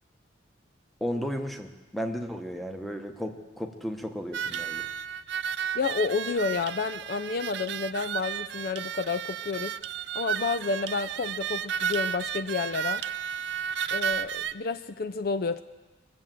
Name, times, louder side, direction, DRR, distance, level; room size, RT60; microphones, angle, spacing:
voice 1, 1.0-4.9, equal, ahead, 5 dB, 1.0 m, -34 dB
sound 1, 4.3-14.5, right 8 dB, 60° right, 0.4 m, -33 dB
voice 2, 5.7-9.7 10.2-13.0 13.9-15.6, left 4 dB, 50° left, 12 dB, 0.4 m, -30 dB
23.0 x 7.8 x 7.5 m, 1.2 s
head